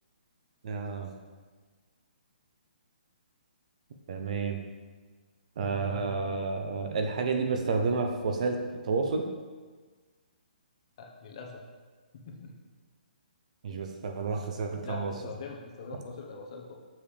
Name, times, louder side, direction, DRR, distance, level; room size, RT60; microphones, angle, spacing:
voice 1, 0.6-1.1 4.1-4.6 5.6-8.6 8.8-9.2 13.6-15.1, right 4 dB, 45° right, 5 dB, 0.7 m, -30 dB
voice 2, 11.0-11.6 12.1-12.5 13.7-13.8 14.8-16.7, left 4 dB, 40° left, 0 dB, 1.0 m, -43 dB
7.1 x 5.1 x 3.3 m, 1.5 s
hypercardioid pair, 165°, 5 cm